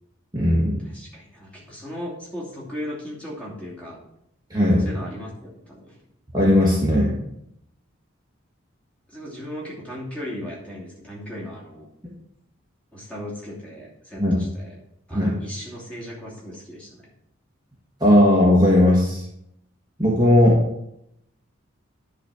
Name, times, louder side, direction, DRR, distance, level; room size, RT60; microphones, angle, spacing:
voice 1, 0.3-0.8 4.5-4.8 6.3-7.1 14.2-14.4 15.1-15.3 18.0-19.2 20.0-20.6, left 1 dB, 20° right, -5 dB, 1.5 m, -17 dB
voice 2, 0.8-4.0 4.6-6.0 9.1-11.9 12.9-14.8 15.1-17.0, equal, 5° left, -5 dB, 2.7 m, -37 dB
10.0 x 4.1 x 7.2 m, 0.78 s
head